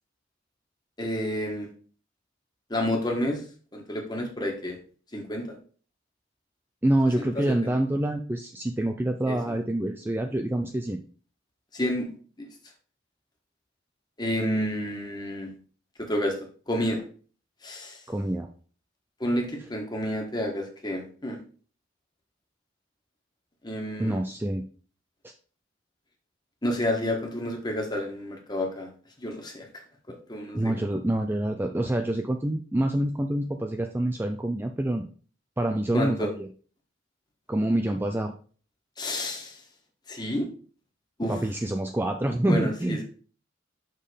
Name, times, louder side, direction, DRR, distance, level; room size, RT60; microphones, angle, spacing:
voice 1, 1.0-1.7 2.7-3.4 3.7-4.8 5.1-5.5 7.2-7.7 9.3-9.4 11.7-12.1 12.4-12.5 14.2-15.5 16.0-16.3 16.7-17.0 17.6-18.0 19.2-21.4 23.6-24.2 26.6-28.9 29.2-29.7 30.3-30.7 35.9-36.3 39.0-39.6 40.1-40.5 41.2-41.3 42.5-43.0, left 1 dB, 20° left, 1 dB, 1.4 m, -29 dB
voice 2, 6.8-11.0 18.1-18.5 24.0-24.6 25.2-25.3 30.5-35.1 35.6-36.5 37.5-38.3 41.3-43.0, right 1 dB, 10° right, 5 dB, 0.4 m, -26 dB
6.5 x 3.7 x 5.1 m, 0.41 s
head